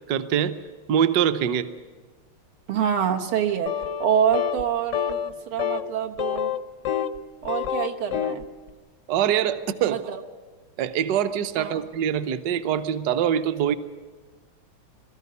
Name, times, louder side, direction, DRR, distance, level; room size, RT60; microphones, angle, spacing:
voice 1, 0.1-0.6 0.9-1.7 9.1-10.0 10.8-13.7, right 9 dB, 60° right, 10 dB, 1.2 m, -24 dB
voice 2, 2.7-6.6 7.4-8.4 9.9-10.2 11.6-11.8, right 8 dB, 85° right, 3 dB, 2.1 m, -26 dB
sound 1, 3.7-4.1 4.3-4.6 4.9-5.3 5.6-5.8 6.2-7.2 7.4-8.4, left 9 dB, 65° left, 0.7 m, -27 dB
22.0 x 13.5 x 9.4 m, 1.4 s
omnidirectional pair, 2.3 m